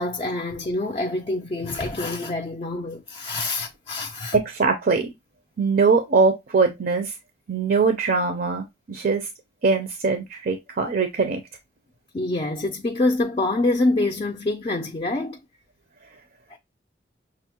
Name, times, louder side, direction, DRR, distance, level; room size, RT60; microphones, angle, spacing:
voice 1, 0.0-4.4 12.1-15.4 16.5-16.6, left 2 dB, 30° left, 0.4 m, -26 dB
voice 2, 4.3-5.1 5.6-7.1 7.5-9.3 9.6-11.4, right 4 dB, 55° right, 0.5 m, -22 dB
6.1 x 2.0 x 2.8 m
head